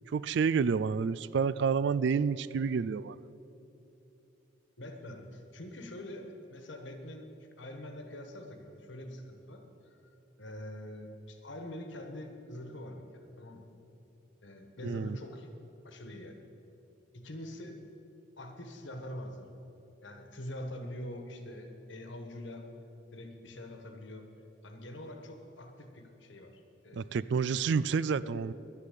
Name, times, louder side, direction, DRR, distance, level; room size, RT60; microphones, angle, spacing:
voice 1, 0.1-3.2 14.8-15.2 26.9-28.5, right 5 dB, 60° right, 18 dB, 0.3 m, -29 dB
voice 2, 4.8-7.3 7.6-9.6 10.0-13.7 14.4-15.5 15.8-16.3 17.1-17.8 18.4-19.5 20.0-22.7 23.1-24.3 24.6-27.1 28.2-28.4, left 1 dB, 65° left, 5 dB, 1.4 m, -44 dB
11.0 x 9.8 x 8.5 m, 3.0 s
head